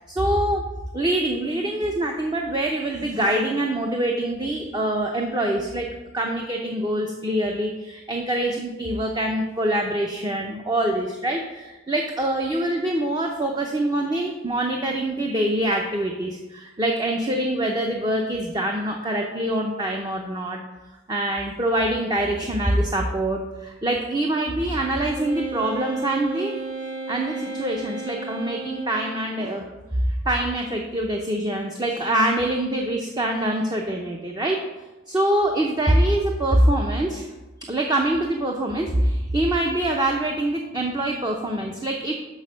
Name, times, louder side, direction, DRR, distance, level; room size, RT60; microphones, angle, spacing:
voice 1, 0.1-5.9 6.1-20.6 21.1-26.6 27.1-29.7 30.2-34.6 35.1-37.3 37.7-42.1, right 1 dB, 20° right, 1 dB, 0.6 m, -24 dB
Wind instrument woodwind instrument, 25.1-29.2, right 3 dB, 80° right, 1.9 m, -33 dB
6.3 x 6.0 x 6.3 m, 1.1 s
head